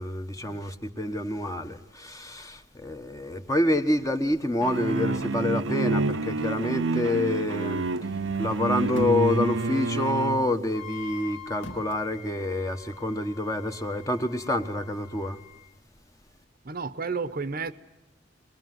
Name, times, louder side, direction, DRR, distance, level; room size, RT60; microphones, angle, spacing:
voice 1, 0.0-7.9 8.4-15.4, left 1 dB, 15° left, 1.3 m, -27 dB
sound 1, 4.6-10.5, right 3 dB, 90° right, 0.9 m, -28 dB
sound 2, 8.5-9.5 10.9-12.0, equal, 80° left, 2.2 m, -45 dB
Wind instrument woodwind instrument, 10.7-15.7, left 9 dB, 35° left, 1.3 m, -46 dB
voice 2, 16.6-17.7, right 4 dB, 50° right, 0.9 m, -32 dB
22.5 x 22.5 x 9.4 m
head